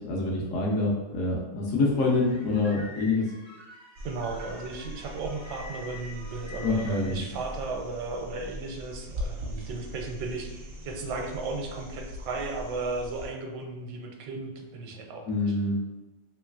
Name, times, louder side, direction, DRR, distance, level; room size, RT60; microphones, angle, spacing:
voice 1, 0.0-3.2 6.6-7.2 15.3-15.8, left 3 dB, 65° left, -1 dB, 0.9 m, -26 dB
sound 1, 2.0-7.1, left 2 dB, 20° right, 0.3 m, -46 dB
sound 2, 4.0-13.3 15.4-15.5, equal, 60° right, 0.6 m, -41 dB
voice 2, 4.0-10.5 10.8-15.6, right 3 dB, 85° right, 2 dB, 1.2 m, -35 dB
3.1 x 3.0 x 2.3 m, 1.1 s
omnidirectional pair, 1.8 m